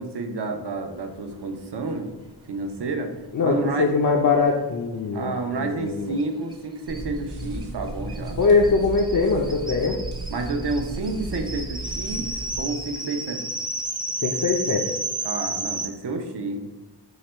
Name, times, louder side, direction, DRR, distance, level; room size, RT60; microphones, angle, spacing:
voice 1, 0.0-2.1 2.5-3.1 3.4-4.0 5.1-8.4 10.3-13.4 15.2-16.6, right 3 dB, 70° right, 4 dB, 0.7 m, -30 dB
voice 2, 3.3-6.2 8.4-10.0 14.2-14.9, left 4 dB, 50° left, 0 dB, 0.5 m, -22 dB
sound 1, 6.2-6.3 6.5-6.6 6.9-15.9, right 2 dB, 10° right, 0.5 m, -32 dB
sound 2, 6.9-12.6, right 1 dB, 85° right, 1.1 m, -35 dB
4.8 x 2.2 x 4.2 m, 1.1 s
wide cardioid pair, 65°, 42 cm